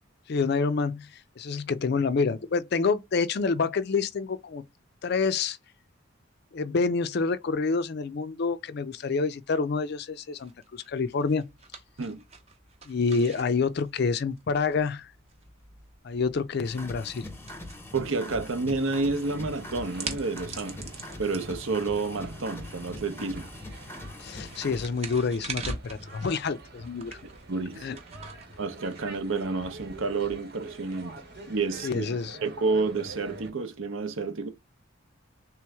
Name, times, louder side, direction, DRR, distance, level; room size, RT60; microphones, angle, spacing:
voice 1, 0.3-1.1 1.4-4.6 5.0-5.6 6.5-11.5 12.9-15.1 16.0-17.3 24.2-27.2 27.8-28.0 31.8-32.4, left 4 dB, 50° left, 0.4 m, -27 dB
sound 1, 10.4-29.6, right 4 dB, 30° right, 0.7 m, -45 dB
sound 2, 16.6-24.9, left 2 dB, 10° left, 0.6 m, -42 dB
voice 2, 17.9-20.9 21.2-23.5 27.5-27.9 28.6-31.2 31.5-32.0 32.4-34.5, right 3 dB, 70° right, 0.7 m, -30 dB
sound 3, 19.2-33.5, right 2 dB, 50° right, 1.0 m, -47 dB
3.4 x 3.0 x 3.4 m
head